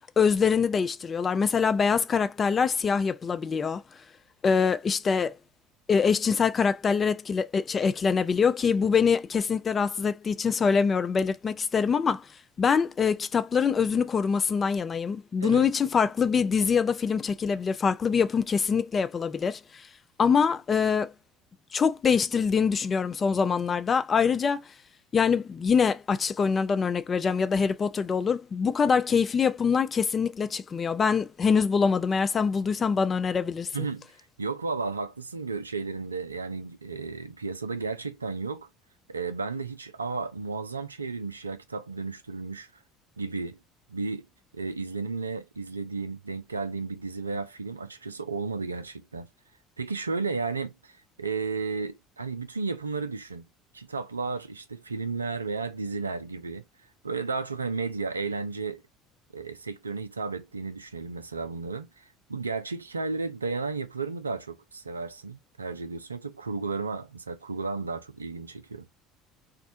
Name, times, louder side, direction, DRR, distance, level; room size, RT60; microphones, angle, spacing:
voice 1, 0.2-3.8 4.4-5.4 5.9-12.2 12.6-19.6 20.2-21.1 21.7-24.6 25.1-33.7, left 6 dB, 30° left, 0.3 m, -24 dB
voice 2, 33.7-34.1 34.4-38.7 39.1-42.7 43.2-43.6 43.9-44.3 44.5-49.3 49.8-53.5 53.7-56.6 57.0-58.8 59.3-62.0 62.3-68.9, right 4 dB, 90° right, 0.3 m, -33 dB
2.5 x 2.1 x 2.5 m
figure-of-eight pair, 65°, 0 cm